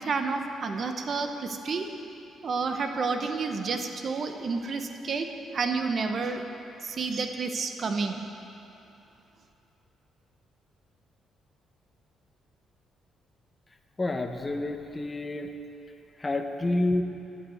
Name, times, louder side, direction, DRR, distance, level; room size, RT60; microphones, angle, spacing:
voice 1, 0.0-1.9 2.4-5.3 5.5-6.4 6.8-8.2, right 4 dB, 50° right, 6 dB, 0.8 m, -30 dB
voice 2, 14.0-15.5 16.2-17.0, left 2 dB, 25° left, 6 dB, 0.7 m, -28 dB
11.5 x 5.6 x 7.9 m, 2.8 s
cardioid pair, 90°, 0 cm